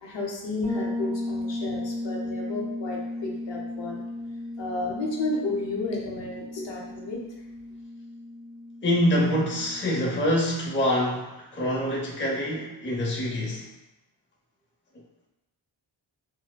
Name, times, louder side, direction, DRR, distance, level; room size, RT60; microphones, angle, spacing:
voice 1, 0.0-4.0 4.6-7.2, left 2 dB, 70° left, -2 dB, 0.7 m, -32 dB
Bass guitar, 0.6-10.3, left 1 dB, 35° right, 0.9 m, -35 dB
voice 2, 8.8-13.7, equal, 25° left, -4 dB, 0.6 m, -25 dB
4.1 x 2.1 x 2.2 m, 0.99 s
wide cardioid pair, 110°, 45 cm